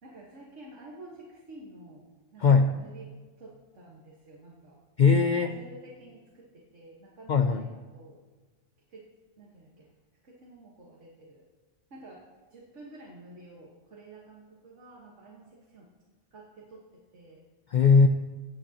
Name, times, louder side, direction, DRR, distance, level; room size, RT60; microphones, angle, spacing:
voice 1, 0.0-2.1 2.3-3.1 3.4-4.8 5.3-8.2 8.9-9.1 9.4-9.9 10.2-11.5 11.9-15.9 16.3-17.4, right 2 dB, 75° right, -3 dB, 1.8 m, -50 dB
voice 2, 2.4-2.8 5.0-5.6 7.3-7.7 17.7-18.1, left 5 dB, 60° left, 7 dB, 0.5 m, -20 dB
17.0 x 8.9 x 2.9 m, 1.3 s
omnidirectional pair, 1.3 m